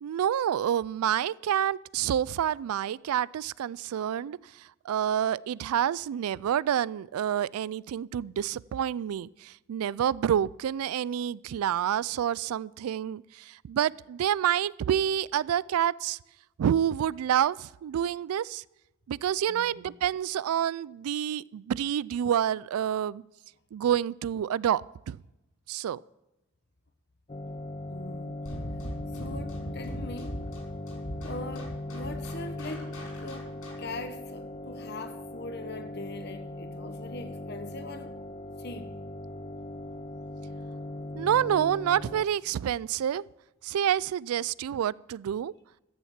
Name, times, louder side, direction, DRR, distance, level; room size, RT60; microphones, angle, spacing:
voice 1, 0.0-4.4 4.8-16.2 16.6-18.6 19.1-23.2 23.7-25.2 25.7-26.0 41.2-43.2 43.6-45.5, right 9 dB, 85° right, 0.3 m, -28 dB
voice 2, 19.5-19.9 27.9-28.3 29.1-30.4 31.2-32.9 33.2-38.2 38.6-38.9, left 2 dB, 50° left, 1.2 m, -41 dB
sound 1, 27.3-42.3, left 1 dB, 25° left, 0.5 m, -39 dB
sound 2, 28.4-34.0, equal, 80° left, 5.8 m, -40 dB
14.0 x 7.1 x 7.3 m
head